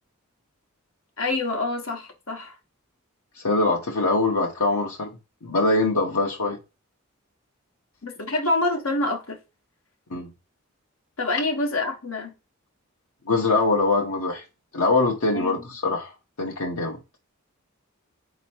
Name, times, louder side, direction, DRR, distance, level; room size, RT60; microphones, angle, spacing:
voice 1, 1.2-2.5 8.0-9.4 11.2-12.3 15.3-15.6, left 2 dB, 75° left, 1.2 m, -26 dB
voice 2, 3.4-5.1 5.4-6.6 10.1-10.3 13.3-14.4 14.7-16.1 16.4-17.0, left 3 dB, 90° left, 0.9 m, -23 dB
4.2 x 2.9 x 4.3 m
head